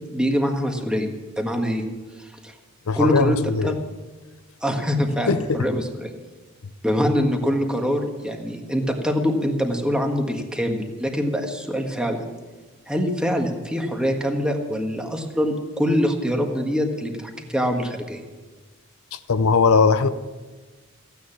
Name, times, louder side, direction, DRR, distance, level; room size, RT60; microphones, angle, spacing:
voice 1, 0.1-1.1 1.4-1.8 2.4-2.5 3.0-3.7 4.6-6.1 6.8-12.2 12.9-18.2, equal, 5° right, 2 dB, 1.6 m, -24 dB
voice 2, 2.9-3.7 5.3-5.7 19.1-20.1, left 4 dB, 80° left, 12 dB, 0.7 m, -19 dB
15.0 x 9.6 x 7.2 m, 1.3 s
head